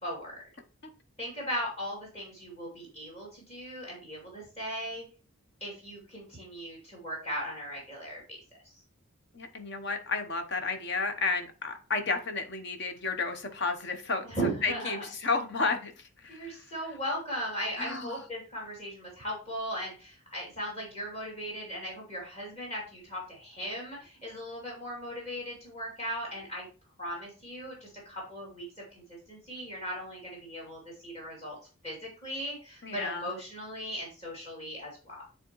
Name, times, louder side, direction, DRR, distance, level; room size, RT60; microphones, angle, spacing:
voice 1, 0.0-0.4 1.2-5.0 5.6-8.4 14.2-15.0 16.3-26.7 27.0-28.7 28.9-29.0 29.3-31.6 31.8-35.2, equal, 30° left, -3 dB, 2.6 m, -38 dB
voice 2, 9.3-14.2 14.6-15.9 16.2-16.6 17.8-18.2 32.8-33.3, left 4 dB, 50° left, 7 dB, 0.9 m, -32 dB
8.9 x 3.5 x 3.0 m, 0.35 s
head